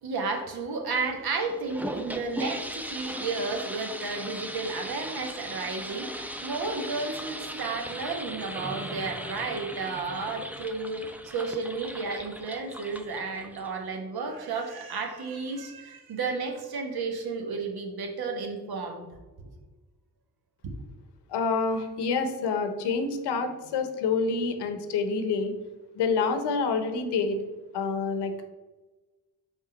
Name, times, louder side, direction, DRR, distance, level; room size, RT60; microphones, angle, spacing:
voice 1, 0.0-19.1 19.4-19.5 20.6-20.7, right 4 dB, 65° right, 3 dB, 1.2 m, -33 dB
sound 1, 1.5-14.0, equal, 5° right, 0.6 m, -38 dB
voice 2, 21.3-25.5 25.9-27.4 27.7-28.5, left 4 dB, 85° left, 7 dB, 0.8 m, -27 dB
5.3 x 3.7 x 5.1 m, 1.2 s
supercardioid pair, 55°, 39 cm